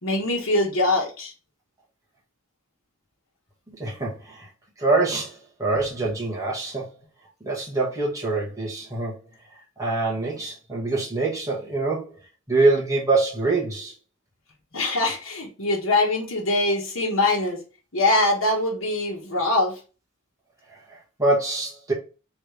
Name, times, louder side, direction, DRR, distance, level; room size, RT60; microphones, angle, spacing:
voice 1, 0.0-1.3 14.7-17.6 17.9-19.7, left 2 dB, 75° left, 1.5 m, -23 dB
voice 2, 3.8-4.5 4.8-6.9 7.4-9.2 9.8-12.1 12.5-13.9 20.9-21.9, right 3 dB, 15° right, 1.5 m, -24 dB
3.6 x 3.3 x 3.3 m
head